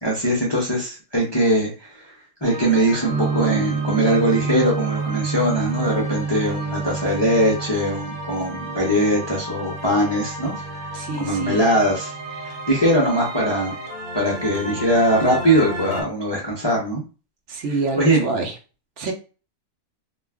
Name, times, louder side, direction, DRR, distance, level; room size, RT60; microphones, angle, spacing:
voice 1, 0.0-2.0 2.4-10.9 11.2-12.1 12.4-13.7 14.1-17.0 18.0-18.2, right 1 dB, 35° left, -3 dB, 0.4 m, -21 dB
sound 1, 2.4-16.0, right 1 dB, 85° right, 1.2 m, -34 dB
sound 2, 3.1-12.9, right 5 dB, 20° right, 0.5 m, -30 dB
voice 2, 10.9-11.6 12.4-12.5 17.5-18.5 19.0-19.1, right 3 dB, 70° right, 3 dB, 0.8 m, -27 dB
2.3 x 2.2 x 3.4 m, 0.35 s
omnidirectional pair, 1.4 m